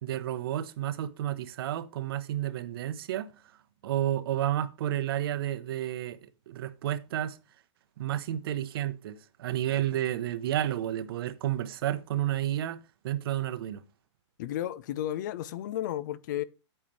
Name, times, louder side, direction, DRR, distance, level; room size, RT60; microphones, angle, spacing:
voice 1, 0.0-3.3 3.8-6.2 6.5-7.4 8.0-12.8 13.0-13.8, right 12 dB, 50° right, 0.9 m, -31 dB
voice 2, 14.4-16.4, left 12 dB, 40° left, 0.5 m, -33 dB
9.2 x 8.9 x 3.2 m
hypercardioid pair, 165°, 16 cm